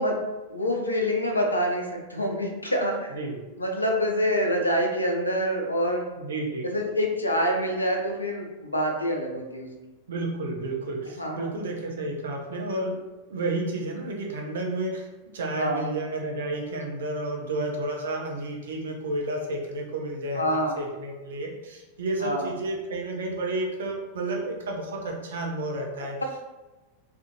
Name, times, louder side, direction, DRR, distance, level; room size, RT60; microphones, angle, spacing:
voice 1, 0.0-3.0 3.6-6.0 6.6-9.7 11.2-11.5 15.6-15.9 20.3-20.7 22.2-22.5, equal, 80° left, 1 dB, 0.4 m, -26 dB
voice 2, 3.1-3.5 6.2-6.7 10.1-13.0 13.3-15.1 15.3-26.2, right 2 dB, 60° right, 0 dB, 0.5 m, -31 dB
2.5 x 2.5 x 2.5 m, 1.1 s
figure-of-eight pair, 90°, 0 cm